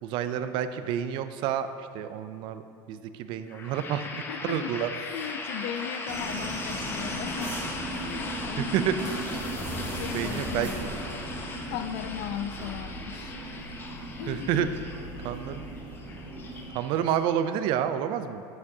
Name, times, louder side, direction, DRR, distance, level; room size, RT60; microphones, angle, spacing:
voice 1, 0.0-4.1 4.4-4.9 8.6-9.0 10.1-10.7 14.3-14.7 15.2-15.7 16.7-18.4, right 9 dB, 55° right, 11 dB, 0.4 m, -29 dB
sound 1, 3.5-17.3, left 3 dB, 20° left, 0.6 m, -39 dB
voice 2, 4.1-7.5 8.0-9.1 9.9-10.9 11.7-13.5 14.2-14.6, left 9 dB, 70° left, 11 dB, 0.4 m, -37 dB
sound 2, 6.1-16.7, right 2 dB, 10° right, 1.3 m, -37 dB
8.5 x 7.0 x 2.7 m, 2.6 s
cardioid pair, 145°, 10 cm